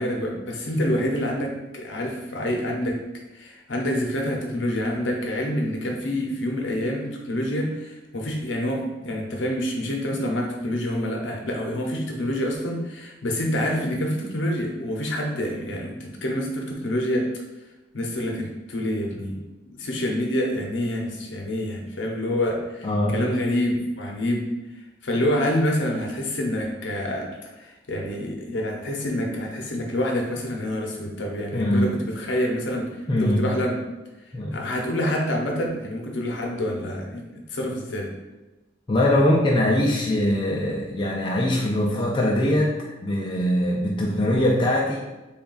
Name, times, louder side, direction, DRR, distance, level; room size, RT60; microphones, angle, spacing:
voice 1, 0.0-3.0 3.3-17.3 17.9-19.4 19.7-24.5 24.7-27.3 27.5-32.9 33.2-33.8 34.5-38.1 44.1-44.3, left 1 dB, 70° left, 0 dB, 0.7 m, -27 dB
voice 2, 22.8-23.2 31.5-31.9 33.1-33.5 34.3-34.6 38.9-42.8 43.0-45.0, left 1 dB, 25° left, -3 dB, 0.3 m, -22 dB
3.3 x 2.3 x 3.8 m, 1.1 s
head